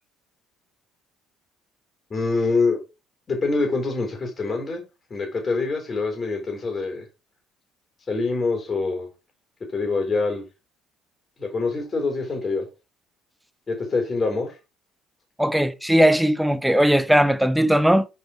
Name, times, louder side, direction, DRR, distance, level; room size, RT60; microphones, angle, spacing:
voice 1, 2.1-2.8 3.3-4.8 5.1-7.0 8.1-9.1 9.7-10.4 11.4-12.7 13.7-14.5, left 3 dB, 35° left, 3.8 m, -25 dB
voice 2, 15.4-18.1, equal, 5° right, 0.9 m, -18 dB
6.7 x 5.0 x 4.5 m
supercardioid pair, 80°, 0 cm